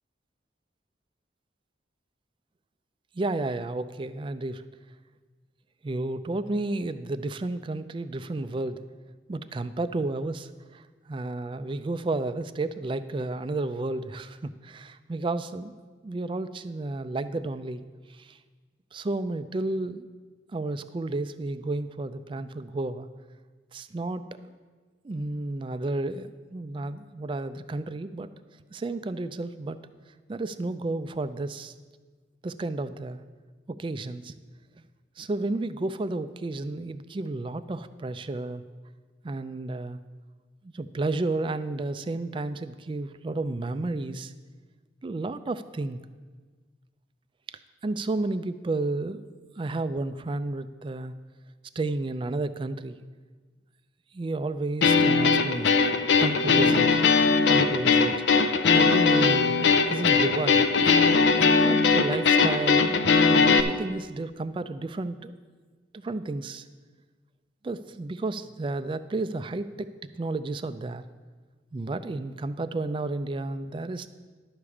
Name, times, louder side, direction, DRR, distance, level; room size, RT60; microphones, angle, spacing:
voice 1, 3.2-4.6 5.8-8.8 9.3-10.8 11.1-15.7 16.0-17.8 18.1-18.4 18.9-20.1 20.5-23.1 23.7-24.2 25.0-28.3 28.7-29.8 30.3-31.7 32.4-33.2 33.7-34.3 35.2-38.6 39.2-40.0 40.6-44.3 45.0-46.0 47.8-49.2 49.6-51.1 51.8-53.0 54.1-55.7 56.2-56.9 57.5-58.1 58.7-60.7 61.6-65.3 65.9-66.7 67.6-69.9 70.2-71.0 71.7-74.1, right 2 dB, 25° right, 12 dB, 0.3 m, -32 dB
sound 1, 54.8-63.6, left 4 dB, 70° left, 0.6 m, -20 dB
11.0 x 4.9 x 7.0 m, 1.4 s
head